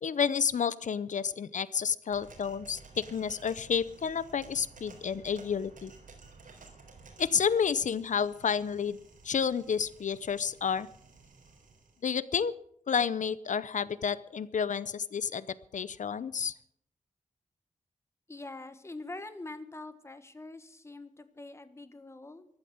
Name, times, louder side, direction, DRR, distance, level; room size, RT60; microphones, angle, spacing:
voice 1, 0.0-5.9 7.2-9.0 9.2-10.9 12.0-12.5 12.9-15.5 15.7-16.5, left 7 dB, 65° left, 17 dB, 0.6 m, -30 dB
sound 1, 2.1-12.0, right 4 dB, 85° right, 3.9 m, -54 dB
voice 2, 18.3-22.5, left 2 dB, 20° left, 11 dB, 1.3 m, -44 dB
14.5 x 12.0 x 7.2 m, 0.66 s
wide cardioid pair, 165°, 14 cm